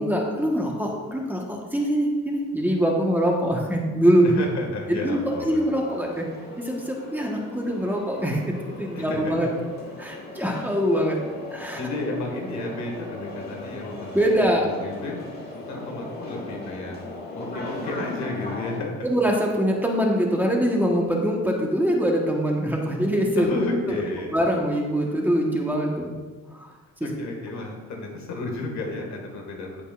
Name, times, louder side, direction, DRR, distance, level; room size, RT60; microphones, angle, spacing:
voice 1, 0.0-4.4 4.9-6.3 6.6-8.4 8.8-9.5 10.0-11.2 11.5-11.8 14.1-14.7 19.0-23.5 23.9-24.0 24.3-26.1 26.5-26.7 27.0-27.1, equal, 5° right, -1 dB, 1.3 m, -23 dB
voice 2, 4.2-5.7 8.9-9.5 11.8-15.3 15.5-17.0 17.3-19.1 23.4-24.3 27.0-29.8, left 2 dB, 65° left, 1 dB, 1.9 m, -32 dB
sound 1, 5.6-18.8, left 1 dB, 30° left, 2.1 m, -38 dB
14.5 x 5.4 x 2.5 m, 1.4 s
cardioid pair, 90°, 30 cm